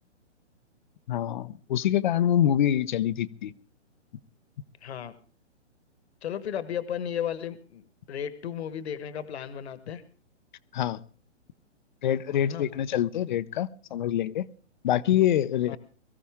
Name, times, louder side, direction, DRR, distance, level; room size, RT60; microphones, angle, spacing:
voice 1, 1.1-3.5 10.7-11.0 12.0-14.5 14.8-15.8, left 11 dB, 40° left, 16 dB, 0.7 m, -25 dB
voice 2, 4.8-5.1 6.2-10.0 12.4-12.7 15.7-15.8, left 9 dB, 60° left, 13 dB, 1.4 m, -34 dB
22.5 x 14.5 x 3.6 m, 0.39 s
hypercardioid pair, 145°, 36 cm